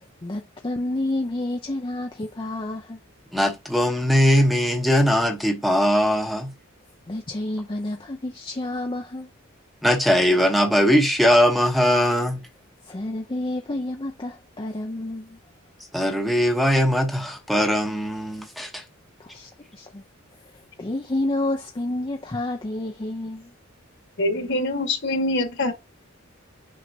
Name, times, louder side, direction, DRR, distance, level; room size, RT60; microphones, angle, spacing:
voice 1, 0.2-3.0 7.1-9.3 12.8-15.4 19.2-20.0 20.8-23.5, left 1 dB, 25° left, 0.6 m, -29 dB
voice 2, 3.3-6.5 9.8-12.4 15.9-18.8, equal, ahead, 1.0 m, -20 dB
voice 3, 24.2-25.7, left 2 dB, 60° left, 1.6 m, -24 dB
6.1 x 5.5 x 2.7 m
head